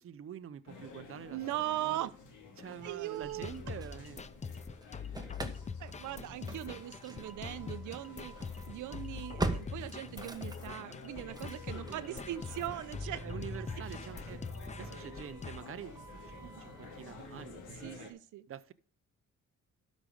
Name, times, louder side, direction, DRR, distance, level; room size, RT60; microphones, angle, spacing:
voice 1, 0.0-1.4 1.7-2.1 2.6-4.3 11.4-12.2 13.1-14.4 14.7-16.0 16.4-18.1 18.5-18.7, right 9 dB, 45° right, 0.8 m, -46 dB
sound 1, 0.7-18.1, left 4 dB, 85° left, 2.4 m, -51 dB
voice 2, 1.3-2.1 2.8-3.5 5.8-8.4 8.7-13.2 16.4-16.6 17.8-18.5, right 14 dB, 80° right, 0.8 m, -39 dB
Engine starting / Slam, 3.1-4.5 4.8-17.9, right 2 dB, 15° right, 1.3 m, -44 dB
sound 2, 3.2-15.6, left 5 dB, 25° left, 0.6 m, -44 dB
12.0 x 5.3 x 5.1 m
cardioid pair, 90°, 30 cm